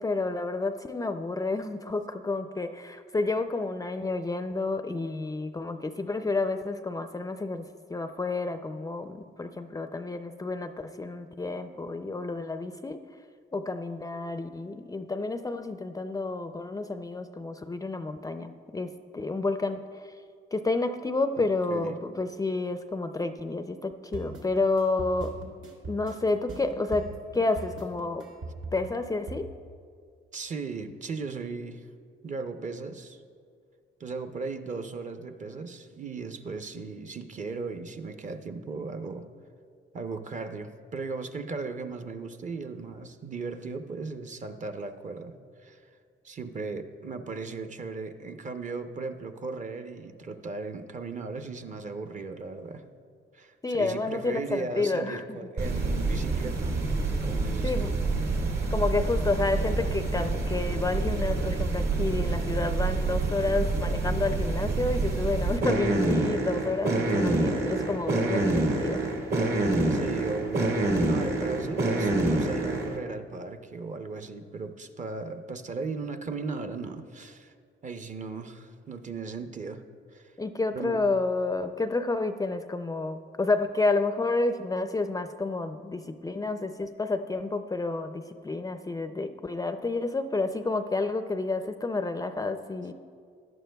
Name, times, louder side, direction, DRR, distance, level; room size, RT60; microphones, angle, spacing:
voice 1, 0.0-7.6 7.9-13.0 13.5-20.1 20.5-25.3 25.9-28.3 28.7-29.5 53.6-55.4 57.6-57.9 58.7-69.0 80.4-92.9, left 3 dB, 20° left, 9 dB, 0.4 m, -30 dB
voice 2, 21.4-22.0 30.3-31.8 32.2-33.2 34.0-39.3 39.9-45.4 45.6-45.8 46.2-52.9 53.3-56.9 57.2-57.9 69.9-70.7 71.0-77.5 77.8-79.8 80.1-80.3 80.7-81.0, right 4 dB, 40° right, 8 dB, 0.7 m, -37 dB
sound 1, 24.1-29.4, right 2 dB, 75° right, 2.0 m, -40 dB
sound 2, 55.6-73.0, right 2 dB, 60° right, 1.9 m, -27 dB
15.5 x 11.0 x 2.3 m, 2.2 s
cardioid pair, 90°, 20 cm